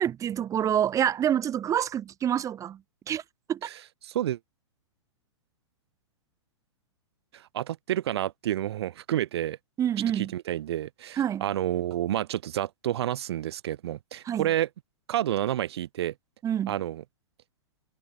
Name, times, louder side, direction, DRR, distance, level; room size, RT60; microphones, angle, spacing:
voice 1, 0.0-2.8 3.1-3.2 3.5-3.7 9.8-10.3 11.2-11.4 14.2-14.5 16.4-16.7, right 10 dB, 20° right, 1.5 m, -27 dB
voice 2, 3.6-4.4 7.3-9.6 10.1-14.7 15.1-16.1 16.7-17.0, right 12 dB, 60° right, 1.0 m, -30 dB
hypercardioid pair, 115°, 15 cm